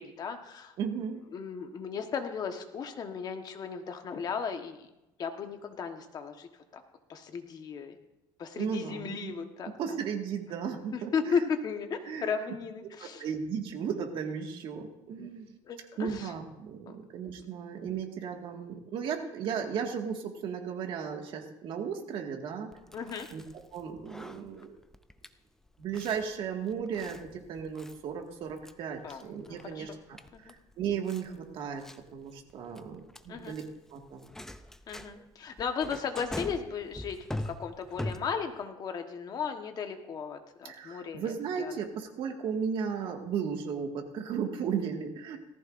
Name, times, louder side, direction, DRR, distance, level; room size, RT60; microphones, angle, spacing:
voice 1, 0.0-0.7 1.3-4.9 5.2-6.8 7.1-8.0 8.4-10.0 10.9-13.2 15.2-15.3 15.7-16.3 16.9-17.0 22.9-23.3 29.0-29.2 29.5-29.9 30.3-30.4 33.3-33.6 34.9-37.2 37.4-41.2 41.6-41.7, left 6 dB, 40° left, 6 dB, 1.3 m, -35 dB
voice 2, 0.8-1.2 8.5-9.3 9.7-11.5 12.0-12.2 13.0-15.5 16.0-22.7 23.3-23.4 23.7-24.8 25.8-31.9 32.1-34.3 40.6-45.4, right 7 dB, 55° right, 2 dB, 1.9 m, -35 dB
Chewing mastication, 22.7-38.6, left 1 dB, 5° left, 0.5 m, -44 dB
18.0 x 14.5 x 2.6 m, 0.95 s
cardioid pair, 140°, 10 cm